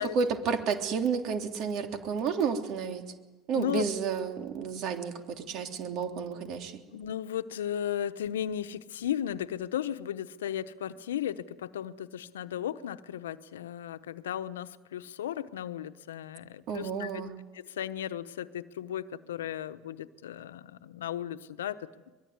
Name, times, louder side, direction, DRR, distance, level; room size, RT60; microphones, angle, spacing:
voice 1, 0.0-3.0 3.5-6.8 16.7-17.3, right 6 dB, 60° right, 5 dB, 3.4 m, -31 dB
voice 2, 6.9-17.2 17.5-21.9, left 10 dB, 85° left, 13 dB, 1.0 m, -35 dB
23.5 x 22.0 x 9.6 m, 1.2 s
hypercardioid pair, 80°, 0 cm